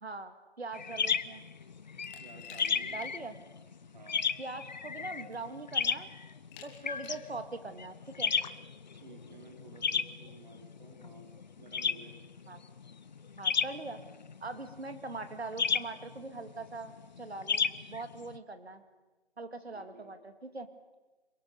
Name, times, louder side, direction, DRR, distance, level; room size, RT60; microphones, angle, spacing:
voice 1, 0.0-1.4 2.9-3.3 4.4-6.1 6.6-8.3 12.5-12.6 13.4-14.0 14.4-18.8 19.4-20.7, right 3 dB, 70° right, 10 dB, 2.3 m, -42 dB
sound 1, 0.7-18.4, left 6 dB, 40° left, 0.8 m, -34 dB
Glass, 2.0-3.1 3.5-3.6 4.8-4.9 5.3-5.7 6.5-7.3, left 8 dB, 15° left, 1.6 m, -53 dB
voice 2, 2.2-3.0 3.9-4.2 8.9-11.3 11.6-12.1 19.7-20.1, right 3 dB, 40° right, 3 dB, 4.7 m, -53 dB
26.5 x 23.0 x 7.0 m, 1.2 s
figure-of-eight pair, 150°, 33 cm